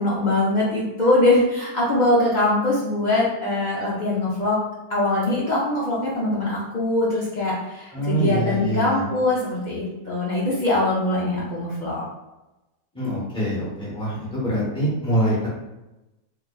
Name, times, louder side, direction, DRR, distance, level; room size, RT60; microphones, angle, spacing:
voice 1, 0.0-4.6 4.9-12.0, left 2 dB, 70° left, -6 dB, 0.4 m, -22 dB
voice 2, 7.9-9.1 12.9-15.5, right 1 dB, 5° left, -7 dB, 0.8 m, -24 dB
3.6 x 3.2 x 2.3 m, 1.0 s
omnidirectional pair, 1.6 m